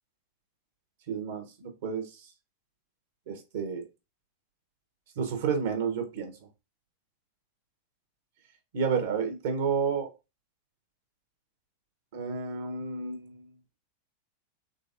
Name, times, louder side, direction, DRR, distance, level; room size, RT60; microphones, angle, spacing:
voice 1, 1.1-2.3 3.3-3.8 5.2-6.3 8.7-10.1 12.1-13.5, right 6 dB, 55° right, 1.1 m, -31 dB
3.8 x 3.3 x 2.6 m
figure-of-eight pair, 90°, 0 cm